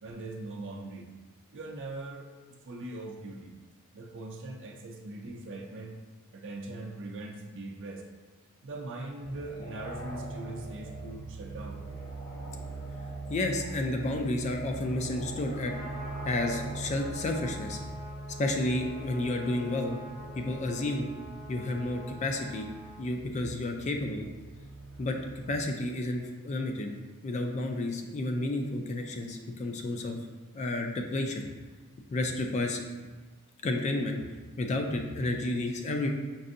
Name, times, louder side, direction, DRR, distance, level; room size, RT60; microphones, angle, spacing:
voice 1, 0.0-1.1 1.5-2.3 2.6-3.5 3.9-5.9 6.3-8.1 8.6-11.8, right 2 dB, 55° right, 2 dB, 0.5 m, -41 dB
sound 1, 9.2-25.6, right 2 dB, 45° left, 0.9 m, -41 dB
voice 2, 13.3-15.8 16.2-17.8 18.4-20.0 20.3-21.1 21.5-22.7 23.0-24.3 25.0-25.2 25.5-27.0 27.2-30.2 30.5-31.5 32.1-32.8 33.6-34.2 34.6-36.1, left 2 dB, 30° left, 3 dB, 0.3 m, -31 dB
Trumpet, 15.5-23.1, right 1 dB, 20° right, 1.4 m, -47 dB
5.3 x 2.5 x 2.5 m, 1.2 s
head